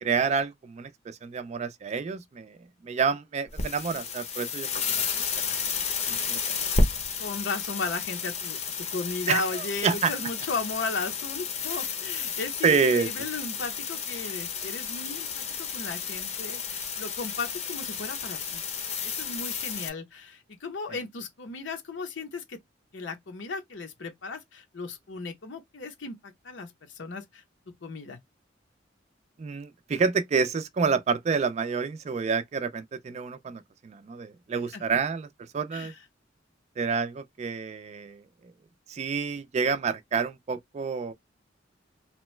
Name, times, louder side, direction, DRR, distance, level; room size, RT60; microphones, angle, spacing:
voice 1, 0.0-2.6 2.8-5.0 6.1-6.4 9.3-10.1 12.6-13.1 20.9-21.0 29.4-35.3 35.5-35.9 36.8-38.2 38.9-41.1, right 5 dB, 35° right, 0.3 m, -28 dB
sound 1, 3.5-19.9, left 5 dB, 35° left, 0.7 m, -32 dB
voice 2, 7.2-18.7 19.0-22.6 22.9-27.4 27.8-28.2 34.7-34.8 35.7-36.0, left 3 dB, 70° left, 0.7 m, -35 dB
2.9 x 2.1 x 3.1 m
head